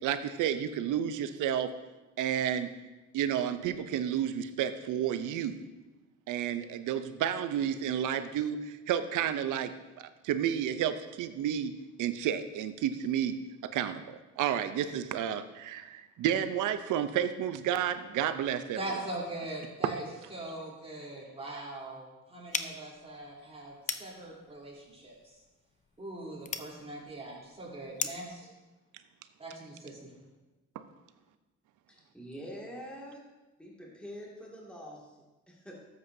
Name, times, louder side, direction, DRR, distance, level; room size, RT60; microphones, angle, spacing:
voice 1, 0.0-1.7 2.2-2.7 3.1-5.6 6.3-9.7 10.2-11.7 12.0-13.4 13.6-18.8, right 9 dB, 85° right, 11 dB, 0.7 m, -31 dB
voice 2, 18.8-20.0 20.3-25.4 26.0-28.5 29.4-30.1, right 1 dB, 20° right, -5 dB, 3.4 m, -41 dB
sound 1, 22.5-28.4, left 5 dB, 25° left, 0.6 m, -40 dB
voice 3, 31.9-33.3 33.6-35.8, equal, 5° left, -4 dB, 2.2 m, -45 dB
13.0 x 7.9 x 2.7 m, 1.1 s
cardioid pair, 90°, 30 cm